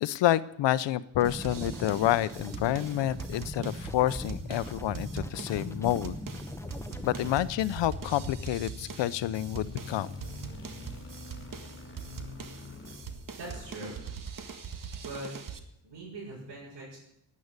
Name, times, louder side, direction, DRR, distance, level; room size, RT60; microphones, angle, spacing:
voice 1, 0.0-6.2 7.0-10.1, left 13 dB, 85° left, 17 dB, 0.8 m, -28 dB
sound 1, 1.2-7.3, left 1 dB, 5° left, 1.4 m, -40 dB
sound 2, 1.2-15.6, right 6 dB, 50° right, 1.7 m, -43 dB
sound 3, 3.1-15.3, left 3 dB, 30° left, 4.4 m, -45 dB
voice 2, 13.3-14.0 15.0-15.3 15.8-17.0, right 2 dB, 80° right, -6 dB, 7.2 m, -41 dB
12.0 x 9.6 x 9.6 m, 0.77 s
cardioid pair, 90°, 42 cm